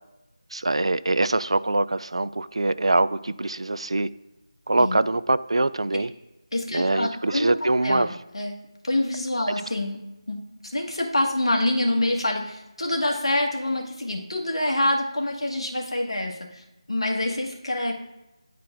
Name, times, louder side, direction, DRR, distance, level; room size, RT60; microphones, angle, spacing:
voice 1, 0.5-4.1 4.7-6.1 6.7-8.2, right 2 dB, 65° right, 15 dB, 0.3 m, -23 dB
voice 2, 6.5-7.5 7.8-8.6 8.8-10.0 10.3-10.4 10.7-16.6 16.9-17.9, left 1 dB, 65° left, 0 dB, 1.4 m, -26 dB
9.9 x 4.4 x 2.5 m, 0.98 s
figure-of-eight pair, 165°, 3 cm